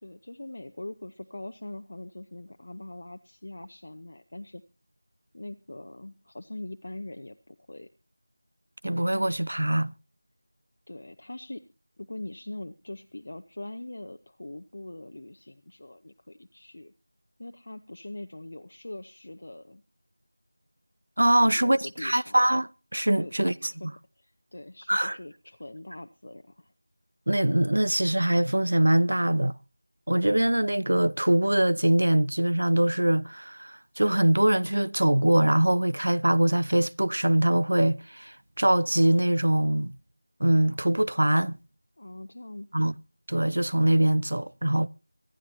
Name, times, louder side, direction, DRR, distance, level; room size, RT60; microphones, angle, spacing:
voice 1, 0.0-4.6 5.3-7.9 10.9-11.6 12.0-16.9 17.4-19.8 21.4-22.4 23.2-23.9 24.2-26.7 42.0-42.9, left 1 dB, 45° left, 0.8 m, -42 dB
voice 2, 8.8-10.0 21.2-23.9 24.9-25.2 27.3-29.5 30.1-39.9 40.4-41.6 42.7-43.0 43.3-44.9, right 1 dB, 60° right, 0.7 m, -23 dB
24.5 x 11.5 x 2.8 m
figure-of-eight pair, 170°, 0 cm